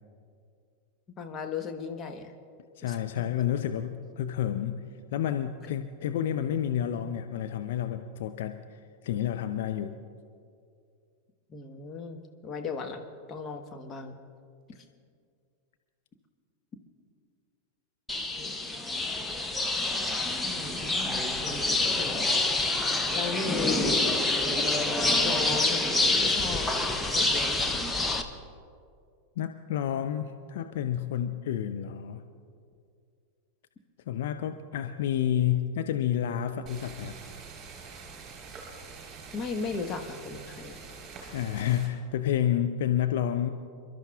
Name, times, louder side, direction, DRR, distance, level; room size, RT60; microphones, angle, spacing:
voice 1, 1.2-2.3 2.8-3.2 11.5-14.2 18.4-18.5 20.4-22.4 23.1-24.2 25.1-25.8 26.1-26.7 27.1-27.8 39.3-40.8 41.2-41.4, left 4 dB, 25° left, 4 dB, 1.2 m, -37 dB
voice 2, 2.8-4.8 5.1-9.9 29.4-32.2 34.1-37.1 41.3-43.5, left 10 dB, 55° left, 7 dB, 0.6 m, -30 dB
sound 1, 18.1-28.2, left 2 dB, 10° left, 0.9 m, -27 dB
sound 2, 36.7-41.9, right 5 dB, 30° right, 3.9 m, -45 dB
29.0 x 12.0 x 2.4 m, 2.3 s
figure-of-eight pair, 90°, 0 cm